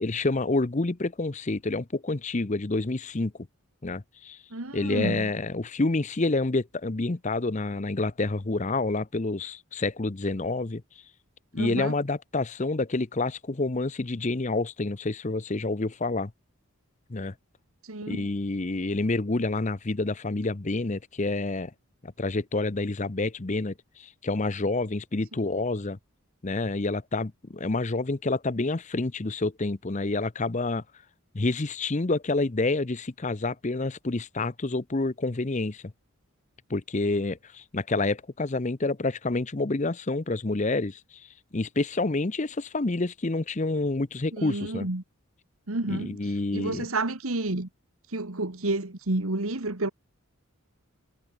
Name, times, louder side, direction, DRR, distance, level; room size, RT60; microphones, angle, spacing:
voice 1, 0.0-3.3 3.8-4.4 4.7-10.8 11.5-16.3 17.1-17.3 18.1-21.7 22.0-26.0 26.4-30.8 31.3-35.8 36.7-41.3 41.5-44.9 45.9-46.9, left 2 dB, 35° left, 0.7 m, -28 dB
voice 2, 4.5-5.3 11.6-11.9 17.9-18.3 44.3-45.0 45.7-46.2 46.5-47.7 48.1-49.9, right 2 dB, 75° right, 1.9 m, -30 dB
head